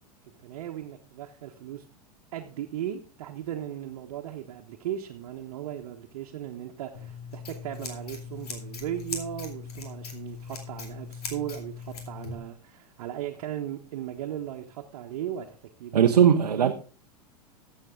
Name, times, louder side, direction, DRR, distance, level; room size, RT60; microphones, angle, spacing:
voice 1, 0.4-1.8 2.3-16.7, right 11 dB, 60° right, 1.2 m, -37 dB
Scissors, 6.9-12.3, left 5 dB, 70° left, 2.6 m, -39 dB
voice 2, 15.9-16.7, right 8 dB, 75° right, 0.8 m, -19 dB
13.5 x 7.6 x 3.7 m
figure-of-eight pair, 95°, 20 cm